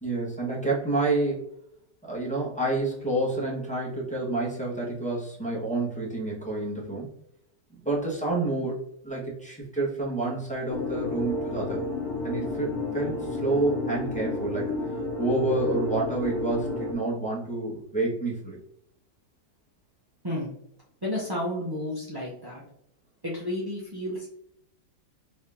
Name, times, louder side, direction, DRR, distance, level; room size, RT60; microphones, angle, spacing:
voice 1, 0.0-1.4 2.0-7.1 7.8-8.8 9.0-11.8 12.2-14.8 15.2-18.6, right 2 dB, 5° left, -6 dB, 1.1 m, -28 dB
sound 1, 10.7-16.9, left 2 dB, 50° left, 0.8 m, -31 dB
voice 2, 21.0-22.6 23.2-24.3, left 1 dB, 25° right, -5 dB, 0.4 m, -31 dB
4.5 x 3.0 x 3.6 m, 0.75 s
omnidirectional pair, 2.0 m